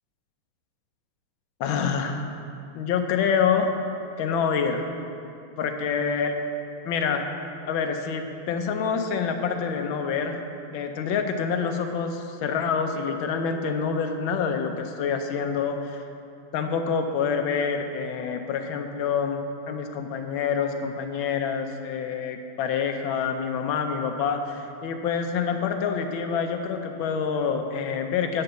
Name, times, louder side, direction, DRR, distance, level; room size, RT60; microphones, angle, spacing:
voice 1, 1.6-2.3 2.7-3.8 4.2-4.9 5.6-6.3 6.8-7.2 7.7-10.4 10.7-16.0 16.5-19.4 19.7-28.4, left 6 dB, 75° left, 5 dB, 1.4 m, -27 dB
9.1 x 5.2 x 6.8 m, 2.6 s
omnidirectional pair, 2.4 m